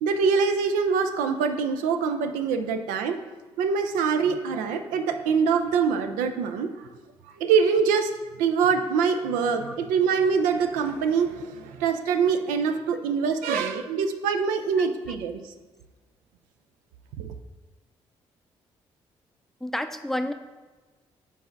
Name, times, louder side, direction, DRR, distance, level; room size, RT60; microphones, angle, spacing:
voice 1, 0.0-3.2 3.6-6.7 7.4-8.1 8.4-15.4 17.2-17.3, right 6 dB, 75° right, 7 dB, 0.5 m, -24 dB
voice 2, 14.8-15.2 19.6-20.3, left 1 dB, ahead, 8 dB, 0.5 m, -32 dB
4.7 x 4.1 x 5.7 m, 1.3 s
hypercardioid pair, 40°, 14 cm